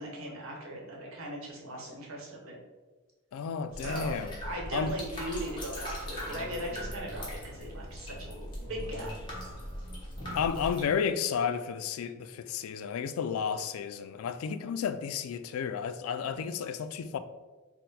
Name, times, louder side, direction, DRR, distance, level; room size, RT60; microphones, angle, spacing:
voice 1, 0.0-2.6 3.8-4.2 4.4-9.1, right 1 dB, 85° right, 1.0 m, -38 dB
voice 2, 3.3-4.4 4.7-4.9 10.3-17.2, left 7 dB, 85° left, 0.3 m, -32 dB
sound 1, 3.7-10.8, equal, 20° left, 1.0 m, -40 dB
4.2 x 2.1 x 4.0 m
head